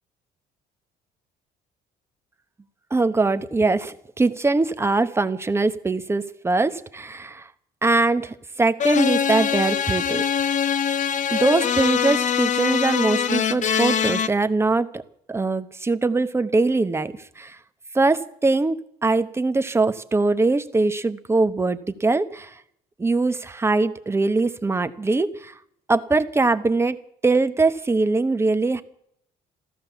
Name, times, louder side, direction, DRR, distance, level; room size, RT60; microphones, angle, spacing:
voice 1, 2.9-7.5 7.8-10.5 11.3-15.0 15.3-17.6 17.9-22.6 23.0-25.5 25.9-28.8, right 3 dB, 15° right, 11 dB, 0.9 m, -22 dB
sound 1, 8.8-14.3, left 8 dB, 45° left, 0.9 m, -23 dB
14.5 x 13.0 x 7.1 m, 0.69 s
cardioid pair, 110°, 17 cm